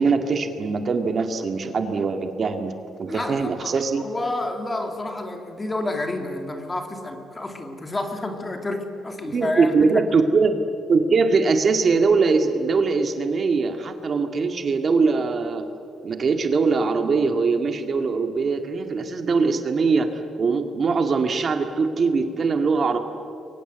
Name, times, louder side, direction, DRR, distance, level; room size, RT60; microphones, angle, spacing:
voice 1, 0.0-2.7 3.0-4.1 9.3-10.5 10.9-15.6 16.0-20.1 20.4-23.0, right 4 dB, 45° right, 6 dB, 2.0 m, -21 dB
voice 2, 3.1-10.0, left 2 dB, 20° left, 5 dB, 2.8 m, -30 dB
28.5 x 23.5 x 8.1 m, 2.8 s
cardioid pair, 105°, 0 cm